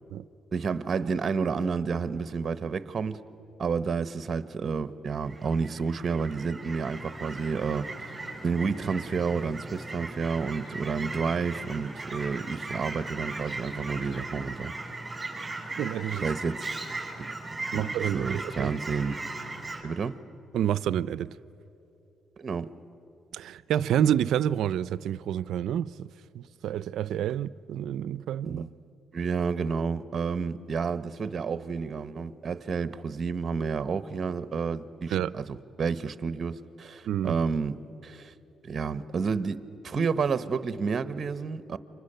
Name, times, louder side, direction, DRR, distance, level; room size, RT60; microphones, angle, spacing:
voice 1, 0.5-3.2 3.6-8.1 8.4-14.7 16.2-16.8 17.2-17.3 17.6-19.2 19.8-20.2 22.4-22.7 28.4-28.7 29.1-37.7 38.0-38.3 38.7-41.8, right 5 dB, 45° right, 1.0 m, -30 dB
Fowl / Chirp tweet, 5.1-19.8, right 3 dB, 15° right, 5.8 m, -38 dB
voice 2, 15.8-16.3 17.7-18.7 20.5-21.3 23.3-26.1 26.3-28.6 35.1-35.3 37.0-37.4, right 10 dB, 75° right, 0.5 m, -28 dB
29.5 x 25.0 x 6.8 m
cardioid pair, 90°, 0 cm